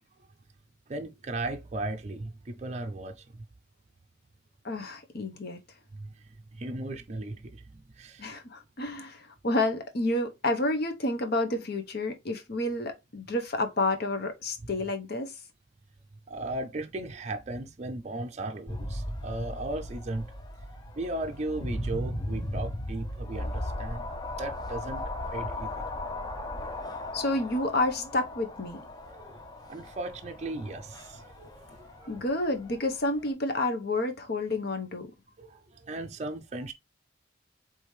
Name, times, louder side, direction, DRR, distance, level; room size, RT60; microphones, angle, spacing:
voice 1, 0.9-3.2 5.9-6.1 6.6-8.3 16.3-20.3 21.0-24.1 24.4-25.0 25.3-25.8 29.0-29.4 29.7-31.5 32.0-32.2 35.4-36.7, right 2 dB, 35° right, 0.5 m, -36 dB
voice 2, 4.6-5.6 8.2-15.3 27.1-28.8 32.1-35.1, left 2 dB, 55° left, 0.9 m, -29 dB
sound 1, 18.7-33.3, left 1 dB, 20° left, 0.6 m, -37 dB
4.9 x 3.4 x 3.2 m
head